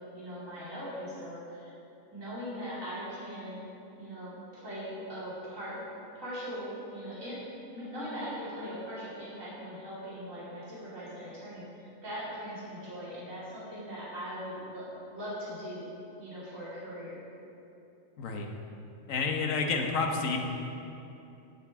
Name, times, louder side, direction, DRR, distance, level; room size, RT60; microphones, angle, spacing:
voice 1, 0.1-1.7 2.1-3.6 4.0-5.8 6.1-7.4 7.7-15.9 16.2-17.2, equal, 75° right, -10 dB, 3.3 m, -40 dB
voice 2, 18.2-18.5 19.1-20.4, left 4 dB, 75° left, 3 dB, 1.4 m, -29 dB
16.0 x 7.3 x 3.6 m, 2.8 s
omnidirectional pair, 1.4 m